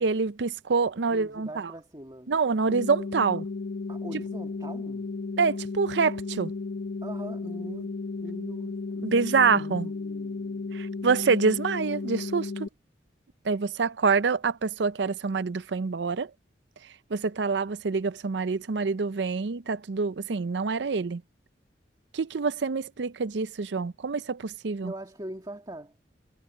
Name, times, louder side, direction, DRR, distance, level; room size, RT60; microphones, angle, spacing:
voice 1, 0.0-1.7 2.3-3.5 5.4-6.5 9.0-9.9 10.7-12.7 13.4-16.3 17.1-21.2 22.1-24.9, right 4 dB, 80° right, 0.6 m, -26 dB
voice 2, 1.1-2.3 3.9-5.1 7.0-9.1 9.4-10.8 24.8-26.0, right 1 dB, 25° right, 1.8 m, -42 dB
sound 1, 2.7-12.7, left 3 dB, 70° left, 0.8 m, -34 dB
head